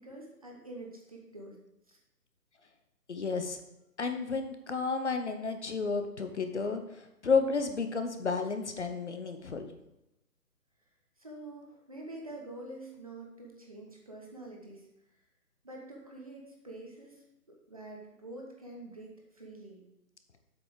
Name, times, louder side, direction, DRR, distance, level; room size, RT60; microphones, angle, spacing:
voice 1, 0.0-1.6 1.9-2.0 11.2-14.9 15.6-19.8, right 2 dB, 25° right, -1 dB, 0.8 m, -46 dB
voice 2, 3.1-3.6 4.0-9.6, left 4 dB, 45° left, 7 dB, 0.9 m, -32 dB
7.9 x 5.6 x 4.8 m, 0.90 s
hypercardioid pair, 170°, 47 cm